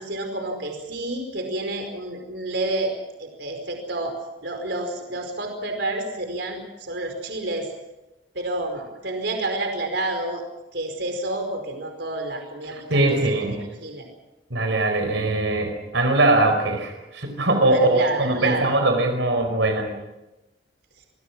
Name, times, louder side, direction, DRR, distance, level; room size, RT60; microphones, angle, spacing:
voice 1, 0.0-2.9 3.2-4.2 4.4-7.7 8.3-10.4 10.7-13.2 13.8-14.0 17.7-18.7, right 2 dB, 65° right, 4 dB, 5.0 m, -29 dB
voice 2, 12.9-13.6 14.5-20.0, right 2 dB, 85° right, 4 dB, 4.9 m, -21 dB
28.0 x 22.0 x 6.2 m, 0.98 s
head